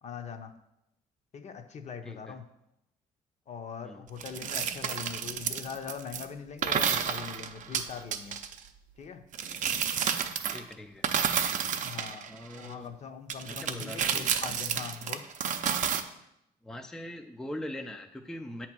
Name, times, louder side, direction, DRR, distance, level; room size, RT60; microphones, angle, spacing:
voice 1, 0.0-0.5 1.3-2.5 3.5-8.4 9.0-9.2 11.8-15.2, left 6 dB, 40° left, 7 dB, 0.7 m, -41 dB
voice 2, 2.0-2.4 3.8-4.0 10.5-11.1 12.3-12.9 13.5-14.3 16.6-18.7, left 1 dB, 5° left, 5 dB, 0.4 m, -41 dB
sound 1, 4.2-6.2 6.6-8.6 9.3-10.7 11.0-12.7 13.3-16.0, right 8 dB, 50° right, 0.6 m, -30 dB
8.1 x 2.9 x 6.0 m, 0.84 s
cardioid pair, 110°, 17 cm